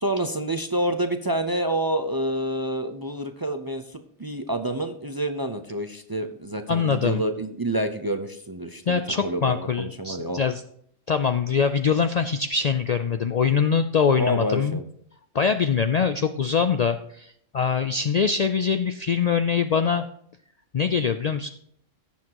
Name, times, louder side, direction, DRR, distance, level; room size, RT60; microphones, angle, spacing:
voice 1, 0.0-3.8 4.2-10.4 14.2-14.9, right 1 dB, 30° right, 7 dB, 0.4 m, -28 dB
voice 2, 6.7-7.2 8.9-10.6 11.1-14.8 15.3-20.1 20.7-21.5, left 6 dB, 90° left, 9 dB, 0.3 m, -23 dB
17.0 x 7.2 x 2.9 m, 0.67 s
omnidirectional pair, 1.3 m